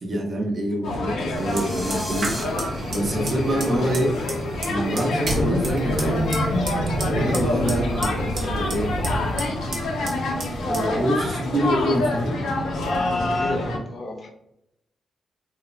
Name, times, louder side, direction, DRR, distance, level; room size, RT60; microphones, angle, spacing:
voice 1, 0.0-4.2 4.7-6.2 7.0-8.9 10.6-12.4, right 1 dB, 40° right, 2 dB, 0.5 m, -26 dB
sound 1, 0.8-13.8, left 1 dB, 90° left, 0.5 m, -26 dB
sound 2, 1.2-2.4, equal, 5° right, 0.7 m, -35 dB
Fire, 1.4-13.2, right 1 dB, 70° right, 0.8 m, -33 dB
voice 2, 3.0-3.3 6.8-7.1 13.0-14.3, left 1 dB, 35° left, 2 dB, 0.5 m, -32 dB
3.0 x 2.0 x 2.3 m, 0.81 s
wide cardioid pair, 145°, 0 cm